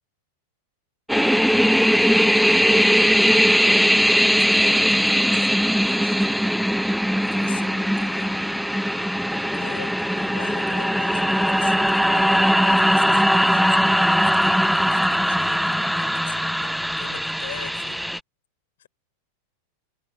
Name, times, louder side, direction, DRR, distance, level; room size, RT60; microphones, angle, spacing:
sound 1, 1.1-18.2, equal, ahead, 0.4 m, -20 dB
voice 1, 1.8-6.5 7.1-8.6 9.2-18.1 18.8-18.9, left 10 dB, 60° left, 6.4 m, -43 dB
figure-of-eight pair, 90°, 0 cm